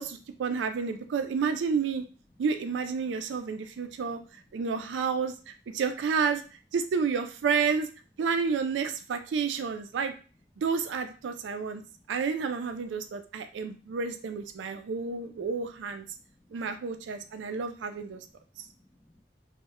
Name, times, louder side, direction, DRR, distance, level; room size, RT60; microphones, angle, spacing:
voice 1, 0.0-2.0 2.4-4.2 4.5-6.4 6.7-7.9 8.2-10.1 10.6-11.8 12.1-16.0 16.5-18.2, right 5 dB, 90° right, 8 dB, 0.3 m, -30 dB
voice 2, 3.0-4.9 11.8-12.1 13.0-13.1 13.5-14.0 14.6-15.2 16.1-17.4 17.8-17.9 18.2-19.2, left 1 dB, 20° left, 2 dB, 0.4 m, -64 dB
2.1 x 2.1 x 3.5 m, 0.36 s
head